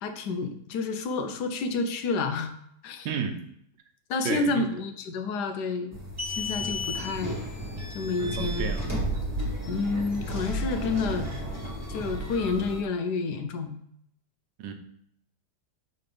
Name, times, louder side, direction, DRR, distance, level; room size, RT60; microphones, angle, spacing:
voice 1, 0.0-2.5 2.8-3.1 4.1-6.0 6.3-7.4 7.9-8.7 9.7-11.3 11.9-13.8, left 4 dB, 70° left, 7 dB, 1.2 m, -29 dB
voice 2, 3.0-3.4 4.2-4.7 8.4-9.0 14.6-14.7, right 6 dB, 80° right, 6 dB, 1.4 m, -31 dB
sound 1, 5.9-12.8, equal, 10° right, 1.4 m, -32 dB
6.6 x 4.1 x 3.4 m, 0.71 s
omnidirectional pair, 1.9 m